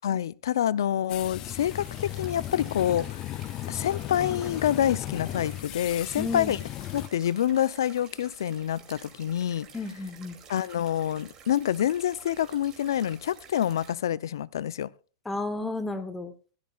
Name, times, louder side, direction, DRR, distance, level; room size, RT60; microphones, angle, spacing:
voice 1, 0.0-3.2 3.7-6.6 6.9-9.7 10.5-14.9, left 10 dB, 85° left, 0.5 m, -27 dB
sound 1, 1.1-7.1, left 14 dB, 30° left, 0.4 m, -36 dB
sound 2, 1.5-13.9, right 6 dB, 25° right, 2.6 m, -51 dB
voice 2, 6.2-6.6 9.7-10.4 15.2-16.3, left 3 dB, 5° left, 0.9 m, -32 dB
16.0 x 12.5 x 2.3 m
supercardioid pair, 150°, 2 cm